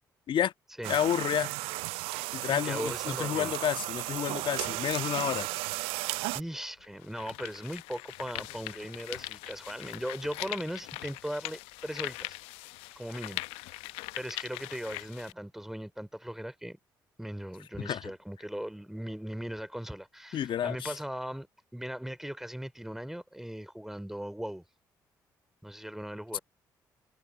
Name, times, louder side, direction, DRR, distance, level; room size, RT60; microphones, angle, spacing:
sound 1, 0.8-6.4, right 24 dB, 70° right, 0.5 m, -34 dB
voice 1, 0.9-1.5 2.3-5.5 17.8-18.0 20.3-20.9 26.3-26.4, left 10 dB, 55° left, 1.6 m, -30 dB
voice 2, 2.5-3.6 6.3-12.4 12.9-13.9 14.2-16.8 17.2-21.5 21.7-24.6 25.6-26.4, equal, 5° right, 3.1 m, -38 dB
sound 2, 6.1-6.2 6.8-15.3, left 23 dB, 70° left, 0.8 m, -41 dB
figure-of-eight pair, 45°, 10 cm